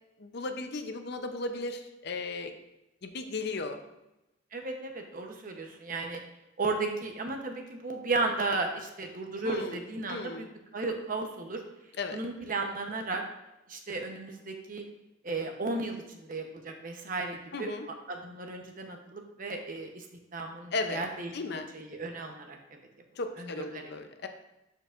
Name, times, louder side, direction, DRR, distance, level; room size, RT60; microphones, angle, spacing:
voice 1, 0.2-2.5 3.0-3.8 9.4-9.8 10.1-10.5 12.0-12.2 17.5-17.9 20.7-21.0 21.3-21.7 23.2-24.3, left 3 dB, 55° left, 6 dB, 0.6 m, -35 dB
voice 2, 4.5-6.2 6.6-10.5 10.7-11.6 12.1-13.2 13.7-14.8 15.2-17.7 18.1-20.1 20.3-22.6 23.4-23.8, right 3 dB, 45° right, 3 dB, 0.9 m, -34 dB
12.0 x 4.6 x 2.5 m, 0.93 s
head